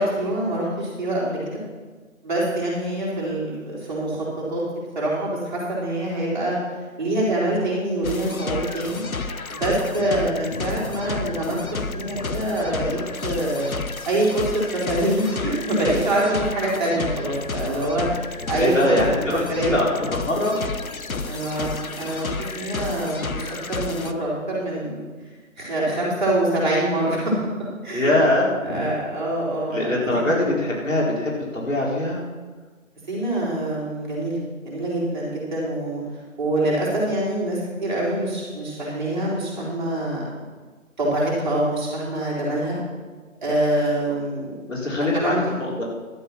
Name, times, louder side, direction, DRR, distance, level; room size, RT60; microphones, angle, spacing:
voice 1, 0.0-1.6 2.2-4.6 4.9-6.6 7.0-9.0 9.5-13.7 14.0-19.0 19.3-19.8 21.3-25.1 25.6-27.3 27.6-28.2 28.6-30.5 33.1-34.4 34.6-36.0 36.4-40.3 41.0-42.8 43.4-44.6 45.1-45.5, right 1 dB, 35° right, -6 dB, 4.6 m, -25 dB
sound 1, 8.0-24.1, left 3 dB, 85° left, 0.9 m, -31 dB
voice 2, 18.6-20.5 27.9-28.9 29.7-32.2 44.7-45.3 45.6-45.8, left 1 dB, 65° left, -4 dB, 4.2 m, -22 dB
12.0 x 9.0 x 6.0 m, 1.4 s
figure-of-eight pair, 165°, 41 cm